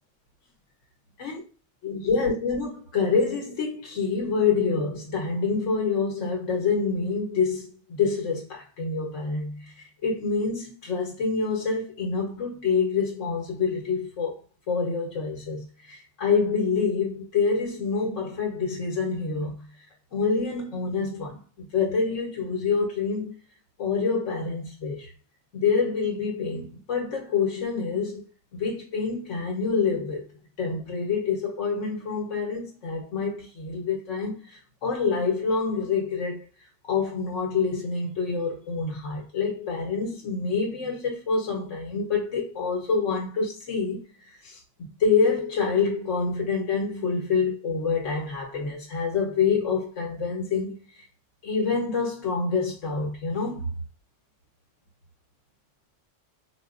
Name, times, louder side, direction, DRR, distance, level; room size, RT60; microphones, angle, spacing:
voice 1, 1.8-14.4 14.7-19.7 20.1-23.3 23.8-25.1 25.5-28.2 28.5-30.2 30.6-36.5 36.8-50.8 51.4-53.7, left 5 dB, 80° left, 1.2 m, -27 dB
4.5 x 2.2 x 2.4 m
omnidirectional pair, 1.3 m